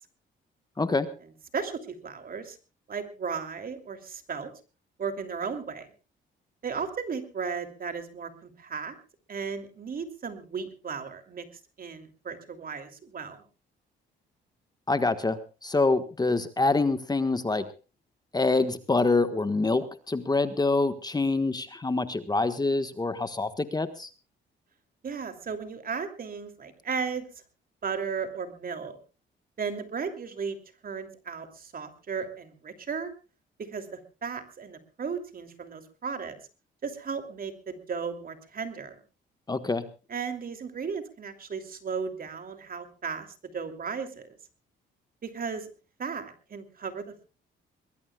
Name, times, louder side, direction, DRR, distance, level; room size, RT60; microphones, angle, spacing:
voice 1, 1.5-2.6 2.9-4.5 5.0-5.9 6.6-9.0 9.3-11.5 11.8-13.4 25.0-27.3 27.8-29.0 29.6-30.6 30.8-33.1 33.6-36.4 36.8-39.0 40.1-43.3 43.5-44.3 45.2-45.7 46.0-47.2, right 5 dB, 45° right, 7 dB, 2.9 m, -35 dB
voice 2, 14.9-17.6 18.3-24.1 39.5-39.8, left 3 dB, 20° left, 10 dB, 1.4 m, -26 dB
22.0 x 21.0 x 2.3 m, 0.33 s
cardioid pair, 90°, 20 cm